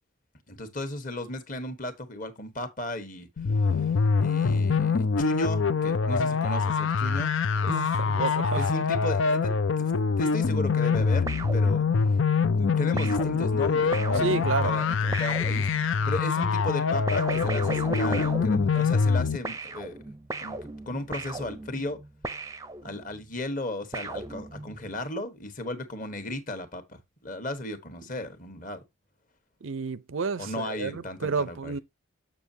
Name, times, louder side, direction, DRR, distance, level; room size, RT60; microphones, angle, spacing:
voice 1, 0.5-7.3 7.6-7.9 8.2-12.2 12.5-20.0 20.4-20.6 20.9-22.0 22.8-28.8 30.4-31.8, left 1 dB, 40° left, 1.4 m, -36 dB
sound 1, 3.4-19.4, left 5 dB, 70° left, 0.6 m, -24 dB
voice 2, 7.7-8.7 14.2-14.8 29.6-31.8, right 4 dB, 75° right, 0.6 m, -30 dB
sound 2, 11.3-12.3 13.0-16.1 17.1-19.2 19.4-23.2 23.9-24.9, right 2 dB, 15° right, 0.6 m, -37 dB
7.5 x 6.9 x 2.8 m
head